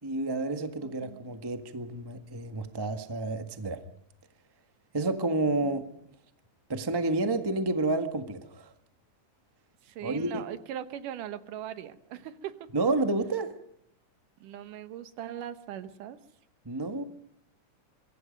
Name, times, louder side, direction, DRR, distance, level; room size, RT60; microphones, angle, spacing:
voice 1, 0.0-3.8 4.9-5.8 6.7-8.7 10.0-10.4 12.7-13.5 16.6-17.0, right 2 dB, 20° right, 7 dB, 0.6 m, -30 dB
voice 2, 0.8-1.2 9.8-12.6 14.4-16.2, right 10 dB, 85° right, 11 dB, 2.7 m, -40 dB
25.5 x 23.0 x 5.3 m, 0.70 s
omnidirectional pair, 3.6 m